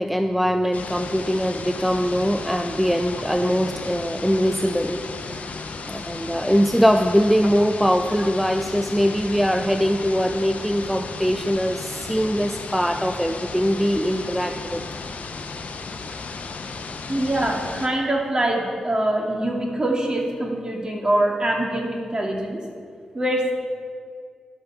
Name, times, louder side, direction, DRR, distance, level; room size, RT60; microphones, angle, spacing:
voice 1, 0.0-5.0 5.3-5.4 5.9-14.8, equal, ahead, 7 dB, 0.5 m, -22 dB
sound 1, 0.7-17.9, left 4 dB, 70° left, 0.8 m, -34 dB
voice 2, 17.1-22.6 23.1-23.5, right 1 dB, 30° right, 0 dB, 2.3 m, -24 dB
11.5 x 5.5 x 6.8 m, 2.2 s
supercardioid pair, 40°, 3 cm